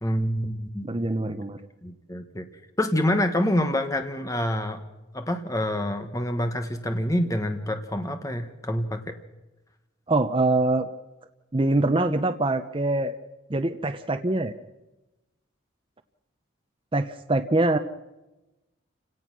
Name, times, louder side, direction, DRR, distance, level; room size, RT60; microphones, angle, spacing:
voice 1, 0.0-1.0 1.8-2.5 2.8-4.8 5.1-9.2, left 1 dB, 15° left, 7 dB, 1.3 m, -27 dB
voice 2, 0.8-1.6 10.1-10.9 11.5-13.2 13.5-14.5 16.9-17.8, right 2 dB, 25° right, 7 dB, 0.7 m, -24 dB
29.0 x 17.5 x 6.2 m, 1.0 s
head